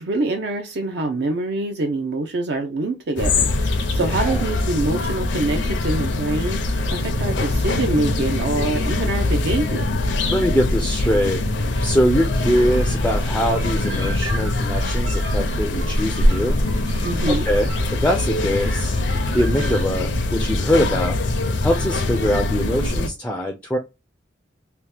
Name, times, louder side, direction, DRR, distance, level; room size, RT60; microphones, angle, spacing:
voice 1, 0.0-9.9 17.0-17.5, right 2 dB, 55° right, 0.4 m, -25 dB
sound 1, 3.2-23.1, left 2 dB, 70° left, 0.5 m, -22 dB
voice 2, 4.0-4.4 10.3-11.4 11.8-16.6 16.9-17.0 17.3-18.9 19.3-21.2 21.6-23.8, equal, 5° left, 0.3 m, -22 dB
sound 2, 12.3-19.8, right 1 dB, 80° right, 1.0 m, -36 dB
2.9 x 2.1 x 3.2 m
head